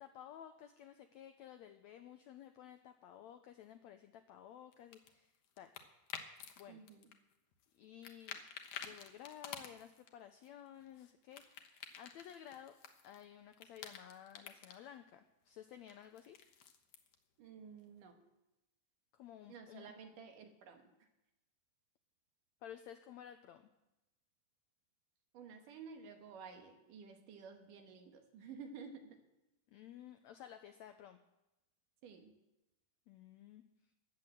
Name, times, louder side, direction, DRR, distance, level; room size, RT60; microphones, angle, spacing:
voice 1, 0.0-5.7 6.6-6.8 7.7-8.4 8.8-11.6 11.9-12.7 13.0-16.4 19.1-19.9 22.6-23.7 29.7-31.2 33.1-33.6, left 10 dB, 90° left, 8 dB, 1.5 m, -54 dB
sound 1, 4.7-6.6 6.9-7.8 8.0-10.1 10.4-13.2 13.5-14.8 15.9-17.1, left 8 dB, 65° left, 2.1 m, -50 dB
voice 2, 6.7-7.1 17.4-18.2 19.5-21.1 25.3-29.2 32.0-32.3, right 5 dB, 70° right, 4 dB, 3.0 m, -53 dB
14.5 x 9.8 x 7.7 m, 0.95 s
omnidirectional pair, 4.0 m